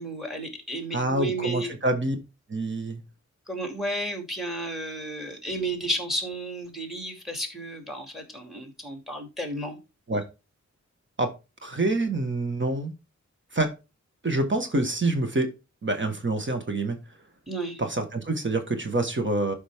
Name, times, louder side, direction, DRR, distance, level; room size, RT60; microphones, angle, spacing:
voice 1, 0.0-1.7 3.5-9.8 17.5-17.8, right 1 dB, ahead, 2.7 m, -32 dB
voice 2, 0.9-2.1 2.5-3.0 10.1-10.2 11.2-11.3 11.6-12.9 13.5-13.7 14.2-15.5 15.8-17.0 17.8-19.5, right 2 dB, 40° right, 1.6 m, -26 dB
12.0 x 5.2 x 3.6 m
wide cardioid pair, 115°, 29 cm